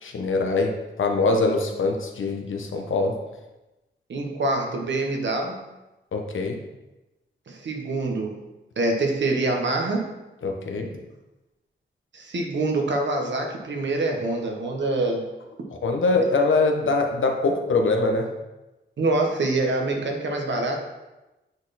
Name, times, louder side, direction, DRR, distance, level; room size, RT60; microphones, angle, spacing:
voice 1, 0.0-3.1 6.1-6.6 10.4-10.9 15.8-18.3, left 3 dB, 80° left, 2 dB, 1.0 m, -23 dB
voice 2, 4.1-5.6 7.5-8.4 8.8-10.1 12.1-15.2 19.0-20.8, right 2 dB, 65° right, 1 dB, 1.2 m, -25 dB
8.6 x 4.2 x 4.2 m, 1.0 s
wide cardioid pair, 180°, 20 cm